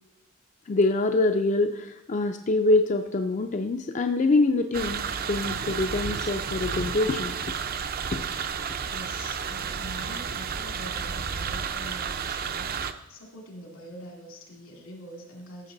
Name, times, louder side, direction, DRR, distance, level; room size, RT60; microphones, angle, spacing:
voice 1, 0.7-5.0 5.3-7.4 8.1-8.2, left 2 dB, 35° left, 6 dB, 0.4 m, -24 dB
sound 1, 4.7-12.9, right 6 dB, 45° right, 0.5 m, -31 dB
voice 2, 8.9-15.7, equal, 85° left, 0 dB, 2.5 m, -44 dB
13.5 x 6.5 x 3.9 m, 0.99 s
head